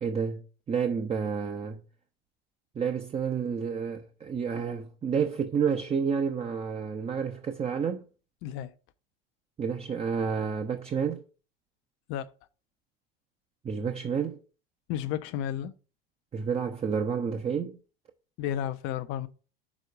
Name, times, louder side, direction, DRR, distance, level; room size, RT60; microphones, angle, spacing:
voice 1, 0.0-0.4 0.7-1.8 2.8-8.0 9.6-11.2 13.6-14.4 16.3-17.8, right 6 dB, 20° right, 0.7 m, -30 dB
voice 2, 8.4-8.7 12.1-12.3 14.9-15.7 18.4-19.3, left 10 dB, 45° left, 0.6 m, -32 dB
6.1 x 4.6 x 6.5 m
figure-of-eight pair, 70°, 29 cm